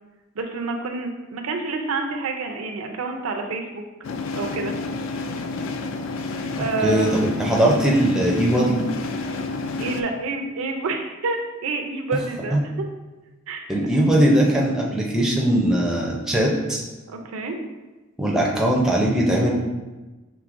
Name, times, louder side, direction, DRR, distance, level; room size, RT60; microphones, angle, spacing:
voice 1, 0.4-3.8 4.3-4.7 6.6-7.3 9.8-12.6 13.5-13.7 17.1-17.6, right 3 dB, 70° right, 4 dB, 0.5 m, -28 dB
sound 1, 4.0-10.0, left 3 dB, 60° left, 0.3 m, -30 dB
voice 2, 6.8-8.8 12.5-12.6 13.7-16.8 18.2-19.5, right 1 dB, ahead, -3 dB, 0.4 m, -20 dB
4.7 x 3.3 x 2.5 m, 1.2 s
head